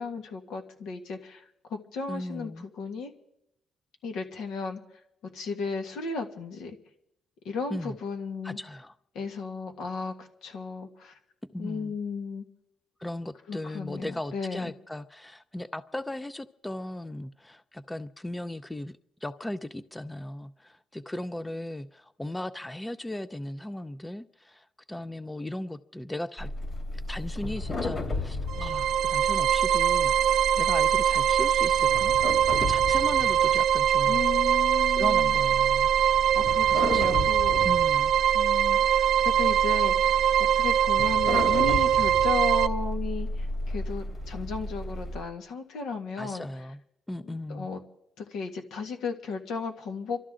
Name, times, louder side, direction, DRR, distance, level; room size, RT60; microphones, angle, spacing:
voice 1, 0.0-3.1 4.0-4.8 5.3-6.8 7.4-8.6 9.1-11.2 11.6-12.4 13.5-14.7 34.1-35.4 36.3-37.7 38.3-40.2 40.5-46.5 47.5-47.8 48.2-50.2, left 4 dB, 80° left, 1.8 m, -35 dB
voice 2, 2.1-2.7 7.7-8.0 8.4-8.9 11.5-12.0 13.0-26.5 27.1-34.2 34.9-35.9 36.7-37.3 37.6-38.1 46.2-46.8 47.1-47.7, left 1 dB, 10° left, 0.5 m, -37 dB
sound 1, 26.4-45.2, left 2 dB, 45° left, 3.1 m, -34 dB
sound 2, 28.5-42.7, right 10 dB, 80° right, 0.7 m, -23 dB
28.5 x 12.5 x 3.8 m
cardioid pair, 90°, 0 cm